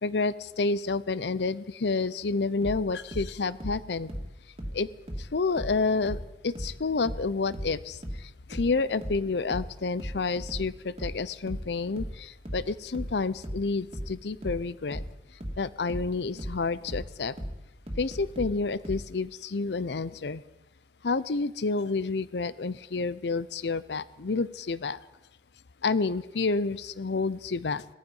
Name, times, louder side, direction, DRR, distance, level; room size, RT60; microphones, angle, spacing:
voice 1, 0.0-4.1 4.7-4.9 5.2-15.0 15.6-17.3 18.0-20.4 21.0-25.0 25.8-27.8, left 4 dB, 70° left, 17 dB, 0.6 m, -29 dB
sound 1, 2.6-5.8 6.1-19.1, equal, 35° right, 2.4 m, -37 dB
18.0 x 14.0 x 5.5 m, 0.97 s
head